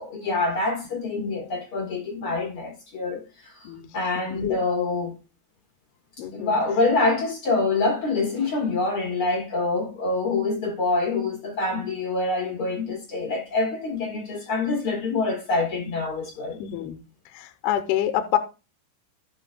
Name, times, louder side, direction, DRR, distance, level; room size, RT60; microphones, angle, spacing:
voice 1, 0.0-3.6 3.9-5.1 6.3-16.6, left 3 dB, 55° left, 1.5 m, -26 dB
voice 2, 6.2-6.6 16.6-17.0 17.3-18.4, left 12 dB, 85° left, 2.7 m, -26 dB
17.0 x 5.9 x 2.2 m
omnidirectional pair, 4.7 m